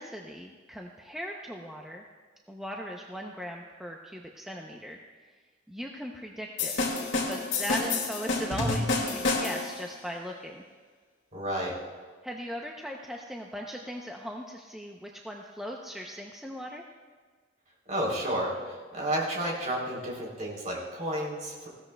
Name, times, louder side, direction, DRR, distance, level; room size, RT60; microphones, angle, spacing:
voice 1, 0.0-2.0 2.5-5.3 5.7-6.8 7.3-10.6 12.2-16.8, equal, ahead, 0 dB, 0.6 m, -38 dB
sound 1, 6.6-9.8, left 3 dB, 75° left, 2.2 m, -29 dB
voice 2, 11.3-11.7 17.9-21.7, right 1 dB, 40° right, -3 dB, 3.4 m, -31 dB
19.5 x 16.0 x 2.3 m, 1.5 s
head